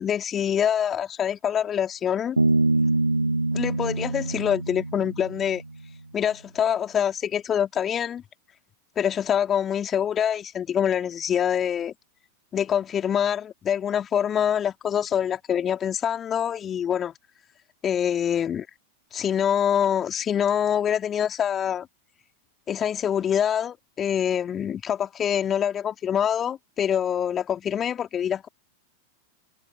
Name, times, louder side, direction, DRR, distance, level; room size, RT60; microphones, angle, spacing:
voice 1, 0.0-2.4 3.5-5.6 6.1-8.2 9.0-11.9 12.5-17.1 17.8-18.7 19.1-21.9 22.7-28.5, left 9 dB, 25° left, 4.0 m, -25 dB
Bass guitar, 2.4-5.9, right 2 dB, 85° right, 2.7 m, -25 dB
figure-of-eight pair, 90°, 0 cm